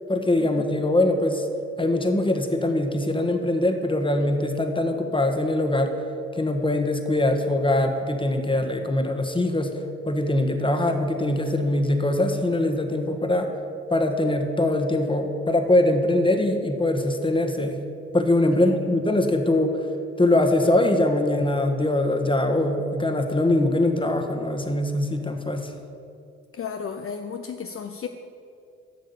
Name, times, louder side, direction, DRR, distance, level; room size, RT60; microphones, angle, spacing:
voice 1, 0.1-1.5 1.8-5.9 6.4-9.7 10.1-13.5 13.9-17.8 18.1-19.8 20.2-25.7, left 1 dB, 15° left, 5 dB, 1.3 m, -22 dB
voice 2, 26.5-28.1, left 6 dB, 50° left, 6 dB, 0.6 m, -34 dB
8.5 x 6.3 x 6.9 m, 2.6 s
supercardioid pair, 45°, 29 cm